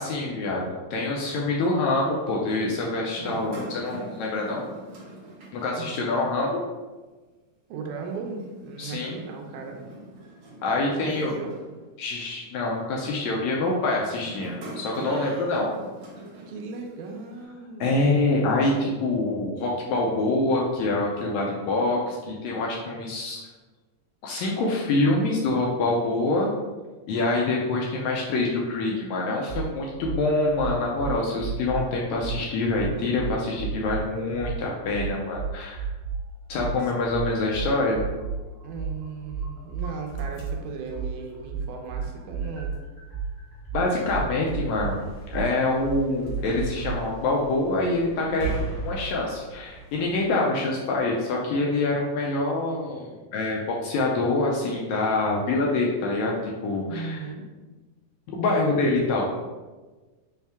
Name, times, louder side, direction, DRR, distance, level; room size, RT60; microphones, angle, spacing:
voice 1, 0.0-4.7 5.5-6.6 8.8-9.2 10.6-11.3 12.0-15.7 17.8-23.4 24.2-26.5 27.1-35.9 36.5-38.0 43.7-45.0 45.3-57.3 58.4-59.2, left 2 dB, 80° left, -2 dB, 1.7 m, -25 dB
sound 1, 3.1-6.5 6.8-6.9 8.0-12.2 12.9-13.2 14.1-17.4, right 2 dB, 55° right, 1.6 m, -43 dB
voice 2, 5.8-6.3 7.7-9.7 11.0-11.5 15.0-15.6 16.5-18.1 38.6-42.7 56.9-57.4, right 4 dB, 80° right, 2 dB, 2.1 m, -37 dB
sound 2, 29.5-29.6 30.0-30.2 30.6-31.8 32.2-32.4 32.7-34.0 34.4-34.6 34.9-36.2 36.6-40.6 40.9-46.9, right 6 dB, 35° right, 1.4 m, -32 dB
sound 3, 39.6-50.3, right 3 dB, 60° left, 1.7 m, -40 dB
5.7 x 2.7 x 3.4 m, 1.3 s
omnidirectional pair, 3.6 m